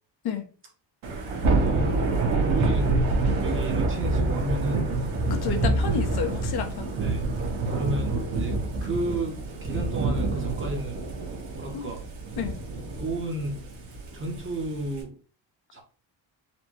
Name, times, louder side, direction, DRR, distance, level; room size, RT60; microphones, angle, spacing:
Thunder / Rain, 1.0-15.0, right 2 dB, 65° right, 1.3 m, -27 dB
voice 1, 1.5-2.0 2.4-3.1 3.4-4.9 7.0-7.3 7.6-11.0 11.5-12.0 13.0-13.6 14.1-15.2 15.7-15.8, right 2 dB, 25° right, 0.8 m, -32 dB
voice 2, 5.3-6.9 11.7-11.9 12.4-12.6, left 7 dB, 55° left, 0.7 m, -30 dB
4.2 x 2.2 x 3.0 m
cardioid pair, 125°, 47 cm